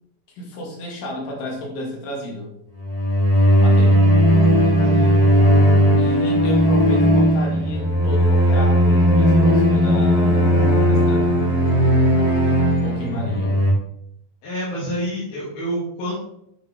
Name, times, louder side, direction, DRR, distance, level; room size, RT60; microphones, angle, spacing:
voice 1, 0.4-2.5 3.6-4.0 6.0-11.4 12.8-13.6, left 1 dB, 65° left, -1 dB, 3.7 m, -32 dB
sound 1, 2.8-13.7, equal, 15° left, 1.5 m, -16 dB
voice 2, 4.6-5.5 14.4-16.2, equal, 85° left, -9 dB, 4.3 m, -28 dB
9.3 x 6.3 x 3.5 m, 0.73 s
omnidirectional pair, 4.2 m